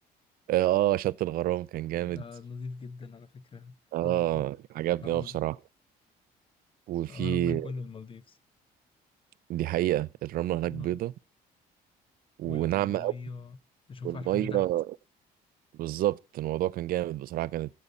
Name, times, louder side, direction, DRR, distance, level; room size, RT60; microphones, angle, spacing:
voice 1, 0.5-2.2 3.9-5.6 6.9-7.7 9.5-11.1 12.4-13.1 14.0-14.9 15.8-17.7, right 14 dB, 60° right, 0.4 m, -28 dB
voice 2, 2.0-3.7 4.0-4.5 5.0-5.4 7.0-8.4 10.7-11.0 12.4-13.6 13.9-14.7, left 4 dB, 30° left, 0.7 m, -40 dB
15.0 x 5.5 x 3.9 m
cardioid pair, 110°, 17 cm